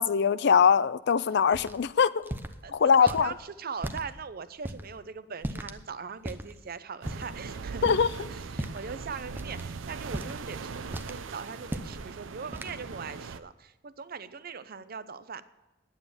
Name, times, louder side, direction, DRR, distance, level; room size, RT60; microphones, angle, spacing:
voice 1, 0.0-2.3 2.7-3.3 7.8-8.1, left 6 dB, 60° left, 0.4 m, -22 dB
sound 1, 1.5-1.8 2.2-2.5 3.1-3.3 3.8-4.0 4.6-4.8 5.4-5.8 6.2-6.5 7.0-7.3 7.8-8.1 8.5-8.9 9.4-9.6 10.1-10.5 10.9-11.2 11.6-12.0 12.5-12.8, right 1 dB, 10° right, 0.7 m, -36 dB
voice 2, 2.6-15.4, right 5 dB, 50° right, 0.7 m, -40 dB
sound 2, 7.0-13.4, right 4 dB, 85° right, 0.6 m, -40 dB
10.5 x 8.9 x 7.1 m
head